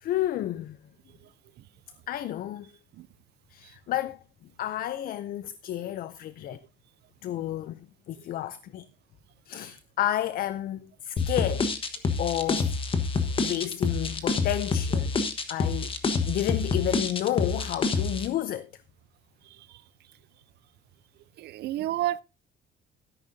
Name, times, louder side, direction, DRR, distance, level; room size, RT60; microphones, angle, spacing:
voice 1, 0.0-0.8 2.1-2.7 3.5-4.2 4.6-6.6 7.2-7.8 8.1-8.9 9.5-11.7 12.2-12.7 13.4-15.1 15.5-15.9 16.3-18.7, left 12 dB, 55° left, 0.5 m, -31 dB
sound 1, 11.2-18.3, left 4 dB, 30° left, 1.3 m, -27 dB
voice 2, 19.5-19.8 21.4-22.2, right 14 dB, 65° right, 0.5 m, -31 dB
13.0 x 10.5 x 2.7 m
cardioid pair, 160°, 19 cm